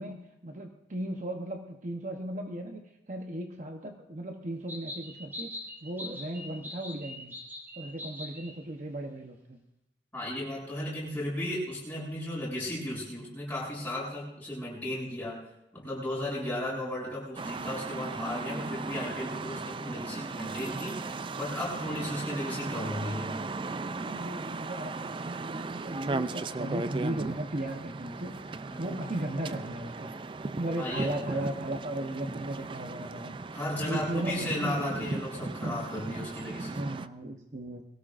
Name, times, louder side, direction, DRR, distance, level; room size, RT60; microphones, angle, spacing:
voice 1, 0.0-2.8 3.1-5.5 5.8-7.3 7.8-9.6 16.5-16.9 24.0-28.4 28.8-30.1 30.6-33.3 33.8-34.9 36.7-37.8, right 1 dB, 45° right, 3 dB, 1.0 m, -36 dB
sound 1, 4.7-8.6, left 1 dB, 15° right, 3.5 m, -42 dB
voice 2, 10.1-15.5 15.7-23.4 28.7-29.0 30.8-31.4 33.5-36.8, left 1 dB, 10° left, -6 dB, 7.6 m, -35 dB
sound 2, 17.4-37.1, right 3 dB, 30° right, 0.4 m, -37 dB
22.5 x 17.0 x 2.6 m, 0.86 s
head